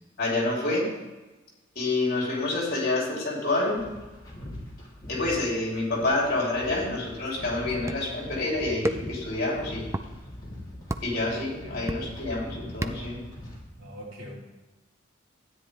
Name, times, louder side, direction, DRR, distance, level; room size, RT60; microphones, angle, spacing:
voice 1, 0.2-0.9 1.7-3.8 5.1-9.9 11.0-13.2, left 2 dB, 50° left, -3 dB, 3.5 m, -28 dB
sound 1, 3.8-13.6, left 1 dB, 20° left, 3.2 m, -42 dB
sound 2, 7.9-8.2 8.8-9.2 9.9-10.1 10.9-11.2 11.9-12.3 12.8-13.2, right 1 dB, 15° right, 0.4 m, -31 dB
voice 2, 11.6-12.1 13.8-14.3, equal, 80° right, -5 dB, 3.7 m, -43 dB
13.0 x 9.6 x 3.4 m, 1.2 s
head